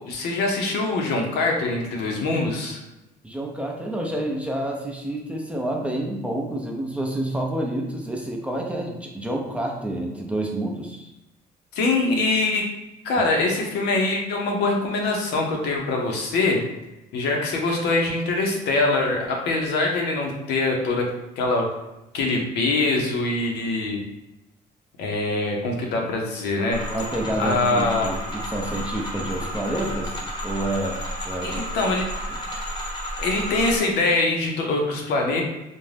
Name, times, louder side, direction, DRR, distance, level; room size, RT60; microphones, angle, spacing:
voice 1, 0.1-2.8 11.7-12.7 13.0-16.6 17.1-21.1 21.4-21.7 22.1-24.0 25.0-26.8 27.4-28.2 31.4-32.1 33.2-35.4, left 2 dB, 80° left, 1 dB, 0.7 m, -23 dB
voice 2, 3.2-11.1 26.9-30.2 30.4-31.0 31.3-31.8 32.3-32.4, right 1 dB, 5° right, 0 dB, 0.4 m, -28 dB
sound 1, 26.7-33.8, equal, 25° left, 0.7 m, -32 dB
2.5 x 2.1 x 3.2 m, 0.96 s
cardioid pair, 110°, 17 cm